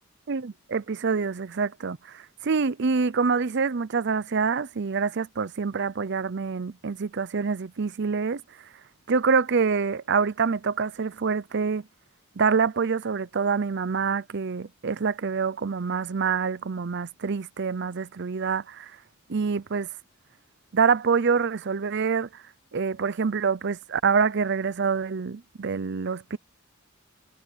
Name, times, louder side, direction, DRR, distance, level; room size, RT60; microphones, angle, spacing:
voice 1, 0.3-8.4 9.1-11.8 12.4-18.9 19.3-19.9 20.7-22.3 22.7-26.4, right 5 dB, 60° right, 0.6 m, -26 dB
head